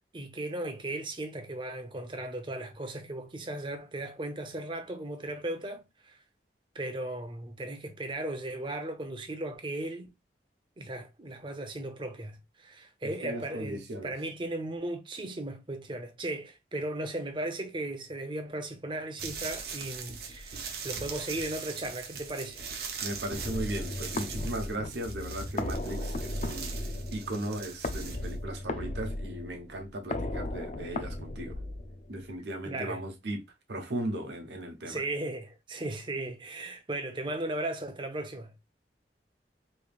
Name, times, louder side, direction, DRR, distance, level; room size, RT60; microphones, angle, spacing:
voice 1, 0.1-6.2 6.7-10.1 10.8-22.7 32.6-33.0 34.8-38.5, right 1 dB, 30° right, 0.7 m, -36 dB
voice 2, 13.0-14.1 23.0-26.7 27.1-31.6 32.1-35.0, right 1 dB, 85° right, 1.0 m, -37 dB
sound 1, 19.2-28.3, right 6 dB, 60° right, 0.8 m, -41 dB
sound 2, 23.3-32.3, left 1 dB, 40° left, 0.5 m, -36 dB
3.4 x 3.2 x 2.4 m
head